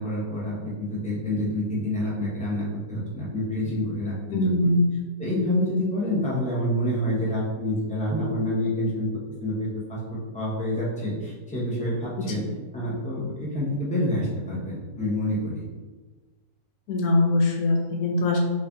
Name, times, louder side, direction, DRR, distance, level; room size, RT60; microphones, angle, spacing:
voice 1, 0.0-4.7 5.2-9.1 9.4-12.4 12.7-15.6, left 1 dB, 10° left, -6 dB, 0.4 m, -27 dB
voice 2, 4.3-4.8 12.2-12.3 16.9-18.4, left 2 dB, 75° left, 1 dB, 1.1 m, -22 dB
3.2 x 2.5 x 3.4 m, 1.3 s
omnidirectional pair, 1.6 m